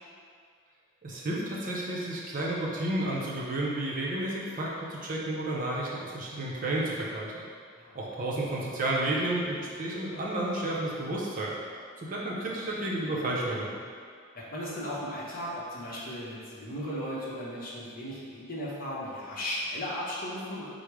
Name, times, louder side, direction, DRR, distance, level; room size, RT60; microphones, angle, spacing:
voice 1, 1.0-7.3 7.9-11.5 12.0-13.8, right 1 dB, 40° right, -5 dB, 0.6 m, -31 dB
voice 2, 14.3-20.7, equal, 40° left, -6 dB, 0.9 m, -36 dB
5.0 x 2.0 x 4.6 m, 2.1 s
head